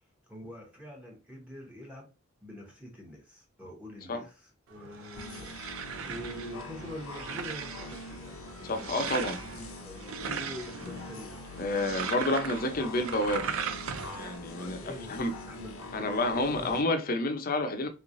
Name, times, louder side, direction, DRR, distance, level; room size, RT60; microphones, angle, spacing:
voice 1, 0.3-2.1 2.4-9.1 9.6-12.1 12.7-12.8 14.5-16.8, left 1 dB, 5° right, 1.0 m, -45 dB
sound 1, 4.7-14.4, right 7 dB, 70° right, 0.5 m, -39 dB
sound 2, 5.1-16.8, left 2 dB, 85° left, 0.7 m, -43 dB
voice 2, 8.6-9.4 11.6-13.5 14.2-14.8 15.1-15.3 15.9-17.9, left 2 dB, 45° left, 0.6 m, -29 dB
3.5 x 3.1 x 2.5 m
head